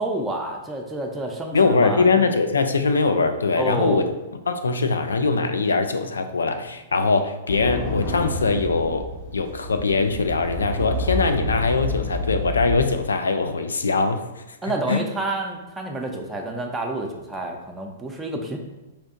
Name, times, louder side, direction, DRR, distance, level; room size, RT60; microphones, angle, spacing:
voice 1, 0.0-2.1 3.6-4.1 14.6-18.6, right 2 dB, 10° right, 1 dB, 0.5 m, -29 dB
voice 2, 1.5-4.1 4.5-9.1 9.3-14.2 14.9-15.0, left 4 dB, 75° left, 8 dB, 0.3 m, -22 dB
sound 1, 7.5-12.9, left 1 dB, 55° left, 1.1 m, -29 dB
4.2 x 2.6 x 2.5 m, 1.0 s
figure-of-eight pair, 105°, 0 cm